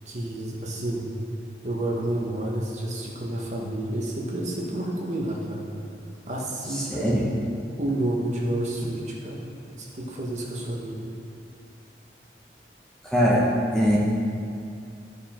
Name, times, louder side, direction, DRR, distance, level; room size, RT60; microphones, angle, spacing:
voice 1, 0.0-1.1 1.6-5.7 6.3-7.1 7.8-9.5 9.8-11.1, right 1 dB, 40° right, -3 dB, 1.3 m, -30 dB
voice 2, 6.7-7.3 13.0-13.5 13.7-14.0, equal, 5° left, -5 dB, 1.0 m, -22 dB
13.0 x 5.2 x 4.4 m, 2.5 s
head